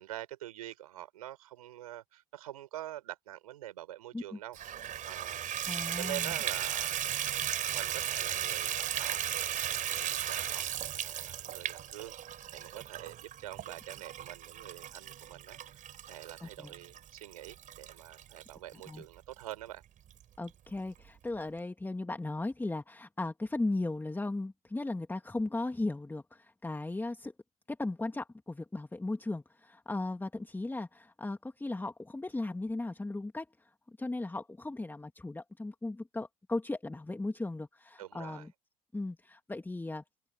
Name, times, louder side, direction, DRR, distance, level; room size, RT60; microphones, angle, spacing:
voice 1, 0.0-5.7 5.9-7.0 7.7-19.8 38.0-38.5, right 13 dB, 75° right, 5.6 m, -46 dB
Water tap faucet / Bathtub (filling or washing), 4.5-18.9 19.5-19.6 20.1-20.2 20.5-20.6, right 10 dB, 45° right, 5.0 m, -36 dB
voice 2, 5.7-6.4 16.4-16.7 18.9-19.0 20.4-27.3 27.7-38.5 38.9-40.0, left 2 dB, 10° left, 2.3 m, -37 dB
figure-of-eight pair, 65°, 19 cm